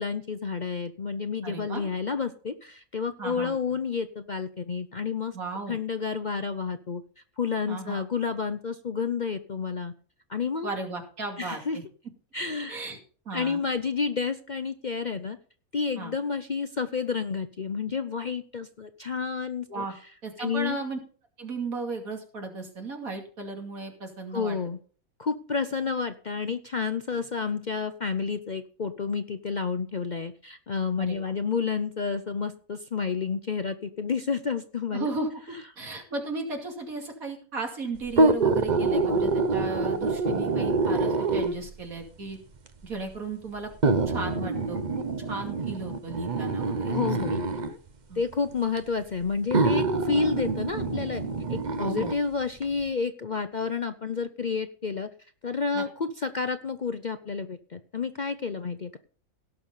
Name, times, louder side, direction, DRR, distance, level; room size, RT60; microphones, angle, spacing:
voice 1, 0.0-5.4 5.7-7.0 7.4-9.9 10.3-10.8 11.4-11.8 12.3-12.8 13.3-15.4 15.7-19.8 20.4-20.8 24.3-24.8 25.2-35.1 46.9-47.4 48.2-51.2 51.5-55.1 55.4-59.0, left 5 dB, 45° left, 9 dB, 0.7 m, -30 dB
voice 2, 1.4-1.8 3.2-3.5 5.3-5.8 7.7-8.0 10.6-11.8 12.7-13.0 13.3-13.6 16.0-16.1 19.7-19.9 20.2-21.0 21.4-24.6 31.0-31.3 34.9-42.4 42.8-47.0 47.3-47.4 48.1-48.2 51.8-52.2 55.7-55.8, right 3 dB, 75° right, 3 dB, 3.0 m, -35 dB
stomach growl, 38.1-41.7 42.7-42.8 43.8-47.7 48.8-48.9 49.5-52.2 52.6-52.7, right 3 dB, 35° right, 0.9 m, -26 dB
17.0 x 6.5 x 5.5 m, 0.41 s
omnidirectional pair, 1.5 m